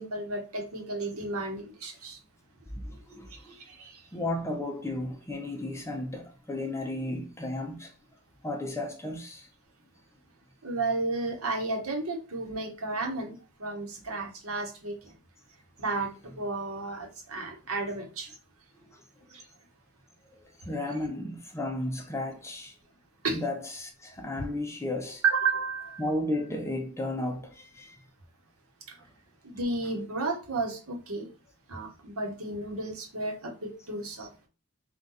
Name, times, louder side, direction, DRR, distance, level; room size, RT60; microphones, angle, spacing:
voice 1, 0.0-2.2 3.3-4.0 10.6-15.1 15.8-18.3 19.3-19.4 23.2-23.4 25.2-26.0 28.9-29.0 29.5-31.3 31.7-34.3, right 3 dB, 70° right, 1.1 m, -32 dB
voice 2, 2.8-3.6 4.1-7.9 8.4-9.5 20.6-22.7 23.3-25.2 26.0-28.0, left 1 dB, 15° left, 0.7 m, -34 dB
3.9 x 2.5 x 4.0 m
head